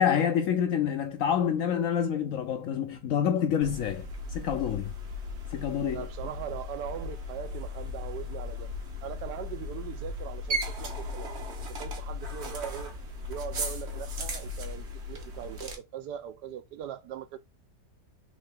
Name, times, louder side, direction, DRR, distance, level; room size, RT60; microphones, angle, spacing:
voice 1, 0.0-4.9 5.5-6.1, left 8 dB, 70° left, 0.8 m, -27 dB
sound 1, 3.6-15.8, left 2 dB, 45° right, 1.0 m, -37 dB
voice 2, 5.9-8.7 9.0-11.3 11.7-12.9 13.3-17.4, right 10 dB, 80° right, 1.2 m, -40 dB
3.7 x 3.2 x 3.6 m
omnidirectional pair, 1.8 m